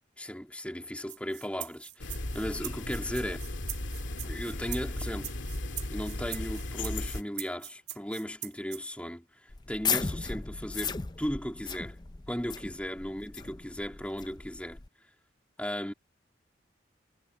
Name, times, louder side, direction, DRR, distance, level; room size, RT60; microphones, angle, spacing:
voice 1, 0.2-3.4 4.2-5.3 5.9-12.0 12.3-14.8 15.6-15.9, equal, 5° left, 2.5 m, -36 dB
sound 1, 1.1-8.8, right 12 dB, 40° right, 2.8 m, -41 dB
sound 2, 2.0-7.2, left 1 dB, 85° left, 2.1 m, -36 dB
sound 3, 9.5-14.9, left 6 dB, 20° left, 0.5 m, -36 dB
head